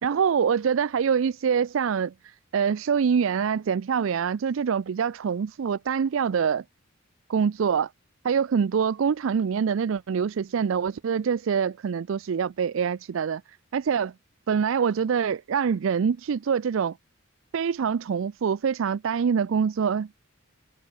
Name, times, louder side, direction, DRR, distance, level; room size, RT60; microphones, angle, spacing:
voice 1, 0.0-6.6 7.3-7.9 8.2-13.4 13.7-14.1 14.5-17.0 17.5-20.2, right 6 dB, 65° right, 0.4 m, -25 dB
head